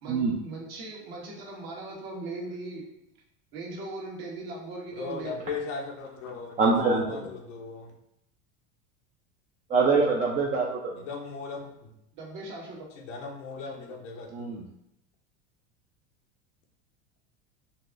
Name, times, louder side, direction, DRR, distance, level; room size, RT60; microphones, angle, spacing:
voice 1, 0.0-2.9 3.5-5.5 12.2-12.9, right 2 dB, 60° right, -2 dB, 1.2 m, -39 dB
voice 2, 5.0-7.9 11.0-11.9 13.1-14.3, left 4 dB, 80° left, 2 dB, 0.8 m, -37 dB
voice 3, 6.6-7.3 9.7-11.0 14.3-14.7, right 4 dB, 20° right, -3 dB, 0.4 m, -24 dB
3.9 x 2.4 x 2.4 m, 0.79 s
supercardioid pair, 105°, 37 cm